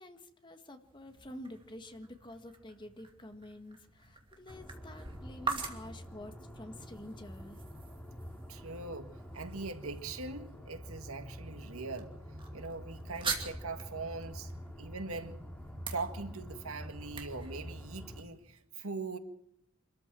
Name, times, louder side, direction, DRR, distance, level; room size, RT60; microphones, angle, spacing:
voice 1, 0.0-7.6, left 1 dB, 20° left, 7 dB, 1.6 m, -49 dB
sound 1, 0.8-18.6, right 5 dB, 25° right, 2.6 m, -45 dB
sound 2, 4.5-18.2, equal, 5° left, 2.8 m, -47 dB
voice 2, 8.5-12.1 12.5-14.5 14.8-15.4 15.9-19.2, right 3 dB, 85° right, 7 dB, 1.9 m, -41 dB
26.0 x 14.0 x 7.6 m, 0.80 s
head